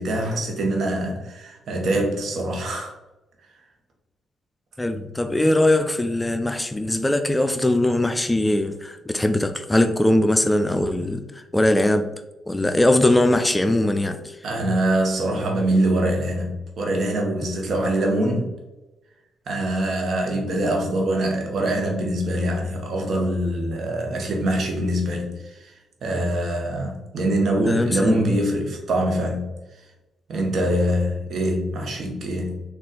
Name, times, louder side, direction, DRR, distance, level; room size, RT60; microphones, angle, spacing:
voice 1, 0.0-2.9 14.4-18.5 19.5-25.7 26.0-29.4 30.3-32.6, right 1 dB, 60° right, 1.0 m, -24 dB
voice 2, 4.8-11.3 11.5-12.1 12.5-14.2 27.7-28.2, left 1 dB, 15° left, 0.4 m, -20 dB
3.9 x 2.5 x 3.8 m
hypercardioid pair, 50°, 0 cm